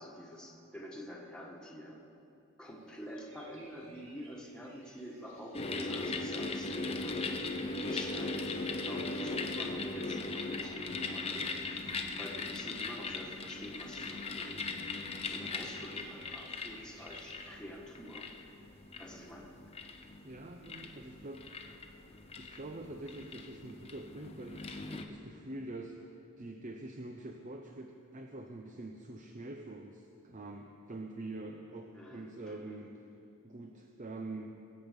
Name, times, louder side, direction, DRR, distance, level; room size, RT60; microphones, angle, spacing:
voice 1, 0.0-2.0 2.6-7.2 7.8-11.9 12.2-14.6 15.2-18.3 19.0-19.5 31.9-32.8, equal, 5° left, -3 dB, 1.6 m, -47 dB
sound 1, 2.6-17.8, right 2 dB, 60° right, 2.5 m, -60 dB
sound 2, 5.5-25.0, left 3 dB, 25° left, 0.7 m, -39 dB
voice 2, 20.2-21.4 22.4-26.0 26.4-33.0 33.4-34.5, right 2 dB, 35° right, 3 dB, 0.6 m, -45 dB
22.0 x 8.1 x 5.2 m, 2.8 s
head